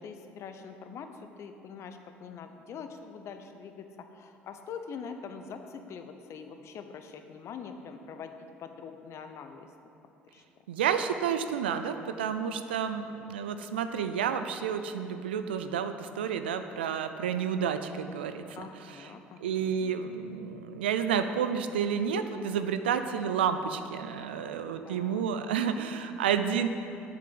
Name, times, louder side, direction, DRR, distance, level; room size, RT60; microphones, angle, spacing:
voice 1, 0.0-9.7 10.3-10.4 18.5-19.9 24.8-25.2, left 6 dB, 55° left, 7 dB, 0.9 m, -44 dB
voice 2, 10.7-18.7 19.4-26.7, right 7 dB, 85° right, 9 dB, 0.5 m, -30 dB
7.6 x 6.8 x 7.8 m, 2.7 s
hypercardioid pair, 60°, 5 cm